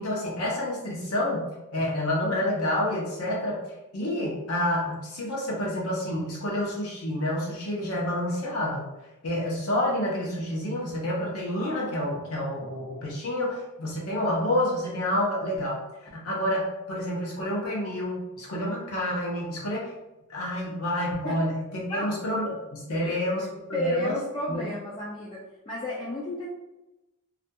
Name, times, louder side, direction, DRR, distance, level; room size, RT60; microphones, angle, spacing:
voice 1, 0.0-3.6 3.9-8.9 9.2-15.8 16.1-19.9 20.3-24.1 24.5-24.7, left 1 dB, 70° left, -4 dB, 0.7 m, -29 dB
voice 2, 23.7-26.5, left 1 dB, 20° left, -5 dB, 0.3 m, -32 dB
2.4 x 2.2 x 2.6 m, 0.98 s
head